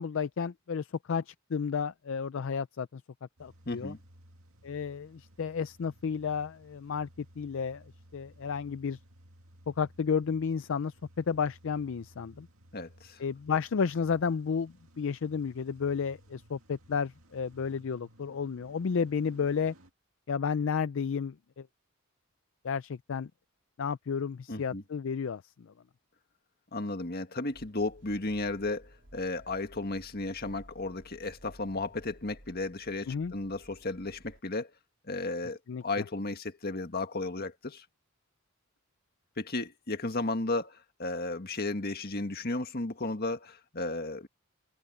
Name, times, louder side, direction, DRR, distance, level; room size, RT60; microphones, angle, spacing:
voice 1, 0.0-3.0 3.4-3.9 4.6-7.8 8.1-9.0 9.7-12.5 13.2-19.7 20.3-21.7 22.6-23.3 23.8-25.7 33.1-33.3 35.7-35.8, left 6 dB, 65° left, 0.4 m, -32 dB
Car / Engine starting / Idling, 3.4-19.9, equal, 75° right, 2.2 m, -58 dB
voice 2, 3.7-4.0 12.7-13.2 24.5-24.8 26.7-34.7 35.1-37.9 39.4-44.3, left 2 dB, 45° left, 1.8 m, -34 dB
sound 1, 27.5-34.4, equal, 60° right, 4.0 m, -56 dB
head